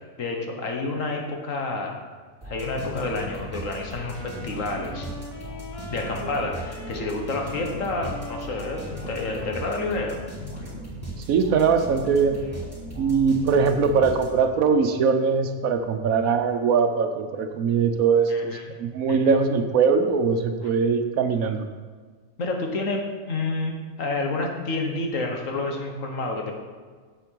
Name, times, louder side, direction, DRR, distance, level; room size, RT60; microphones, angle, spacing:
voice 1, 0.2-2.0 2.5-5.1 5.9-10.2 18.3-18.6 19.1-19.3 22.4-26.5, left 3 dB, 65° left, 2 dB, 1.6 m, -29 dB
sound 1, 2.4-14.6, equal, 10° right, 3.3 m, -37 dB
sound 2, 3.6-10.2, equal, 25° left, 1.1 m, -41 dB
voice 2, 11.3-12.4 13.0-21.6, right 5 dB, 75° right, 7 dB, 1.2 m, -21 dB
8.6 x 7.7 x 4.6 m, 1.5 s
omnidirectional pair, 1.5 m